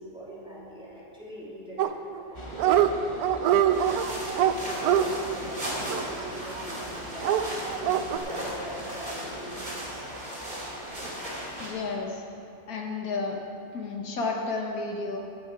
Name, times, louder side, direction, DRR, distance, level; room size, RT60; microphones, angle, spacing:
voice 1, 0.0-1.8 2.2-2.5 2.8-10.0, equal, 5° right, -8 dB, 3.0 m, -42 dB
Dog, 1.8-2.3 2.5-2.9 3.2-6.6 7.2-8.2, right 10 dB, 80° right, 1.1 m, -24 dB
sound 1, 2.3-12.0, left 1 dB, 25° left, 0.9 m, -45 dB
sound 2, 3.7-11.7, equal, 30° right, 2.4 m, -37 dB
voice 2, 11.6-12.2 12.7-13.4 13.7-15.2, left 3 dB, 80° left, 1 dB, 1.7 m, -31 dB
17.0 x 7.1 x 4.7 m, 2.7 s
omnidirectional pair, 1.5 m